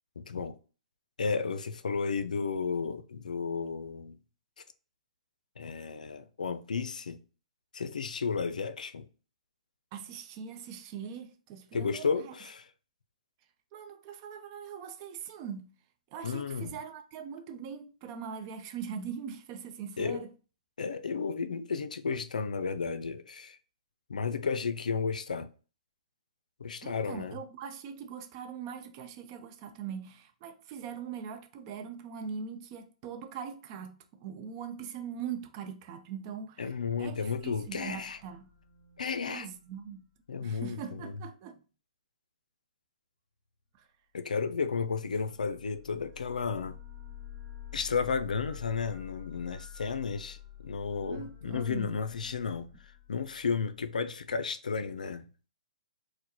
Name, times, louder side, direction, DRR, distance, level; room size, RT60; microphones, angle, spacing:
voice 1, 0.2-0.6 1.2-4.2 5.6-7.2 7.7-9.1 11.7-12.7 16.2-16.8 20.0-20.2 20.8-23.6 24.1-25.5 26.6-27.4 36.6-38.2 39.0-39.5 40.3-41.2 44.1-46.8 47.7-50.4 50.6-55.3, left 5 dB, 85° left, 0.4 m, -33 dB
voice 2, 9.9-12.3 13.7-15.7 16.1-20.3 26.8-36.6 37.0-38.5 39.3-40.0 40.4-41.6 43.7-43.9 51.1-52.0, right 7 dB, 35° right, 0.6 m, -41 dB
sound 1, 36.9-40.5 44.7-53.9, left 11 dB, 5° left, 1.6 m, -50 dB
4.5 x 2.1 x 2.9 m
hypercardioid pair, 140°, 4 cm